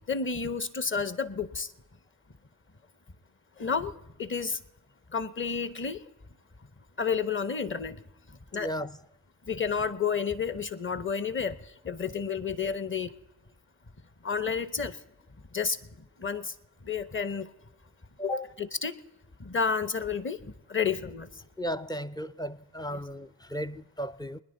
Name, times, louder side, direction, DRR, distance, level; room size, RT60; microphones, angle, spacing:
voice 1, 0.1-1.7 3.6-3.9 4.2-4.6 5.1-6.0 7.0-8.0 8.5-8.8 9.5-13.1 14.2-15.0 15.5-15.8 16.2-16.5 16.8-17.5 18.2-19.0 19.4-21.3 22.9-23.0, left 6 dB, 30° left, 1.1 m, -31 dB
voice 2, 8.5-9.0 18.2-18.4 21.6-24.4, equal, 10° left, 0.5 m, -35 dB
22.5 x 10.5 x 4.0 m
hypercardioid pair, 40°, 43 cm